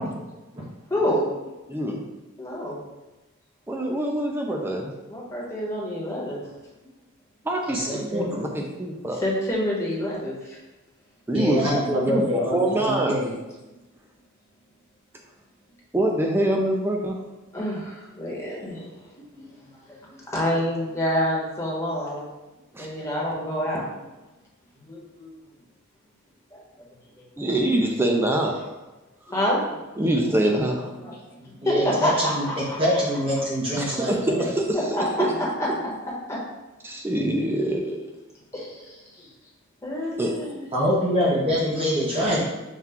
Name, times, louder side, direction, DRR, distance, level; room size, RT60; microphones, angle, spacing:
voice 1, 0.9-1.2 2.4-2.8 5.1-6.4 9.2-10.6 17.5-19.1 19.3-19.5 19.9-20.0 20.3-22.2 22.8-24.0 24.8-25.3 26.5-26.9 29.3-29.8 31.0-32.8 34.7-35.5 36.3-36.4 38.5-39.3 39.8-40.6, equal, 15° left, -5 dB, 1.1 m, -28 dB
voice 2, 1.7-2.0 3.7-4.9 7.4-9.2 11.3-13.2 15.9-17.2 22.7-22.9 27.4-28.7 30.0-30.9 33.8-34.8 35.2-35.3 36.8-38.1 40.2-40.3, right 1 dB, 10° right, 1 dB, 0.3 m, -25 dB
voice 3, 7.7-8.5 11.3-13.3 31.6-34.5 40.7-42.4, equal, 25° right, -6 dB, 0.8 m, -25 dB
5.7 x 2.3 x 3.5 m, 1.1 s
head